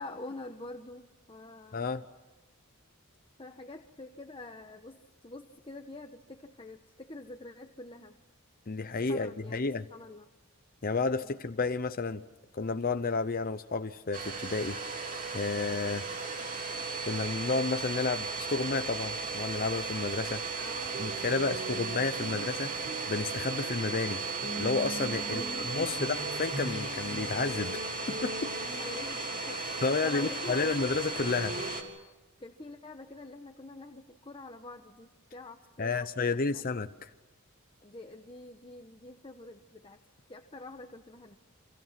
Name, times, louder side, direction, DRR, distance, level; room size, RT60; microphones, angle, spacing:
voice 1, 0.0-1.9 3.4-8.2 8.8-10.3 11.2-11.3 20.5-21.1 21.4-21.8 25.2-26.0 28.8-30.7 32.4-36.6 37.8-40.0 40.3-41.4, left 2 dB, 25° left, 5 dB, 1.1 m, -46 dB
voice 2, 1.7-2.0 8.7-9.9 10.8-12.2 12.5-14.8 15.3-16.0 17.0-20.4 21.0-22.7 23.1-24.2 24.6-25.4 25.7-27.8 28.1-28.5 29.8-31.6 35.8-37.1, left 4 dB, 40° left, 8 dB, 0.7 m, -31 dB
Domestic sounds home sounds, 14.1-31.8, right 4 dB, 35° right, 3.3 m, -36 dB
sound 1, 20.9-31.7, right 2 dB, 60° right, 4.8 m, -42 dB
29.0 x 26.5 x 6.0 m, 1.1 s
head